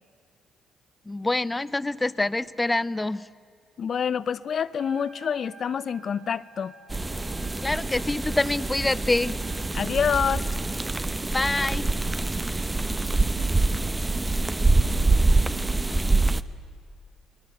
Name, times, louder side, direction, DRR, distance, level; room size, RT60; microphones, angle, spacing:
voice 1, 1.1-3.2 7.6-9.4 11.3-11.9, left 2 dB, 15° left, 16 dB, 0.8 m, -26 dB
voice 2, 3.8-6.7 9.7-10.5, left 7 dB, 55° left, 16 dB, 0.8 m, -27 dB
Trumpet, 4.7-10.5, right 4 dB, 75° right, 5.7 m, -51 dB
sound 1, 6.9-16.4, right 2 dB, 15° right, 0.9 m, -25 dB
30.0 x 20.5 x 9.2 m, 2.3 s
cardioid pair, 90°, 0 cm